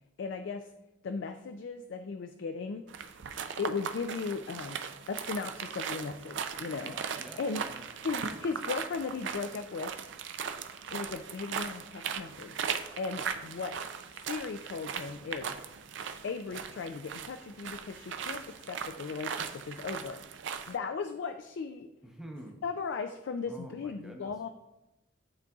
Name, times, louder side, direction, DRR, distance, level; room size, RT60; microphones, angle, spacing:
voice 1, 0.2-0.7 1.0-2.9 3.6-4.8 5.1-7.0 7.4-7.7 8.0-9.9 10.9-13.7 14.1-15.6 16.2-20.2 20.5-21.9 22.6-24.5, left 4 dB, 60° left, 8 dB, 0.3 m, -37 dB
sound 1, 2.9-20.8, right 7 dB, 60° right, 0.4 m, -39 dB
voice 2, 6.8-7.9 22.0-22.6 23.5-24.3, equal, ahead, 0 dB, 0.7 m, -48 dB
11.0 x 3.9 x 2.3 m, 0.93 s
head